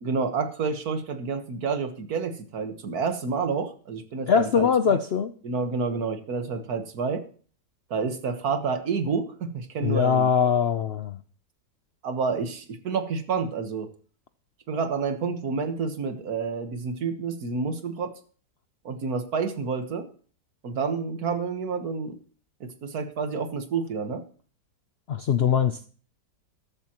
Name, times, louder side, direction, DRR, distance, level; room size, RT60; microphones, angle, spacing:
voice 1, 0.0-5.0 5.4-7.2 7.9-10.5 12.0-13.9 14.7-18.1 18.9-20.1 20.6-22.2 22.6-24.2, right 5 dB, 60° right, 8 dB, 1.8 m, -29 dB
voice 2, 4.3-5.3 9.8-11.2 25.1-25.9, left 7 dB, 85° left, 10 dB, 0.5 m, -22 dB
14.0 x 12.0 x 3.0 m, 0.43 s
omnidirectional pair, 1.9 m